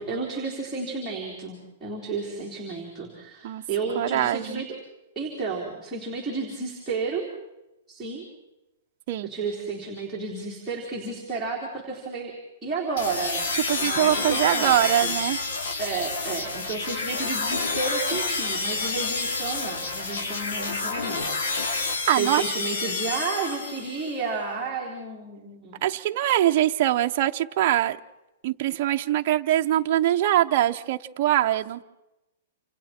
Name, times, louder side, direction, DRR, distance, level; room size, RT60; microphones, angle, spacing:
voice 1, 0.0-4.7 5.2-7.3 7.9-8.2 9.2-12.4 12.6-13.5 13.8-15.1 15.8-21.3 22.1-25.8, right 4 dB, 5° right, -7 dB, 3.8 m, -32 dB
voice 2, 4.0-4.6 9.1-9.3 13.7-15.4 22.1-22.4 25.8-28.0 28.4-31.8, right 13 dB, 40° right, 4 dB, 0.8 m, -23 dB
sound 1, 13.0-24.1, left 3 dB, 65° left, 2.9 m, -29 dB
28.5 x 28.0 x 4.4 m, 0.96 s
hypercardioid pair, 170°, 0 cm